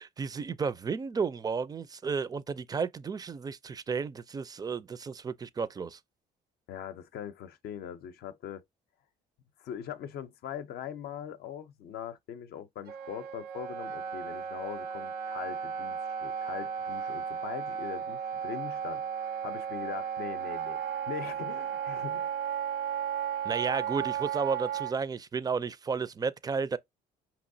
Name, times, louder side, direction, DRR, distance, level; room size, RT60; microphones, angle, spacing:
voice 1, 0.0-6.0 23.4-26.8, right 5 dB, 25° right, 0.4 m, -33 dB
voice 2, 6.7-8.6 9.6-19.0 19.4-22.3, left 9 dB, 70° left, 0.6 m, -41 dB
Wind instrument woodwind instrument, 12.9-24.9, right 8 dB, 85° right, 1.0 m, -34 dB
5.3 x 3.0 x 2.6 m
cardioid pair, 110°, 17 cm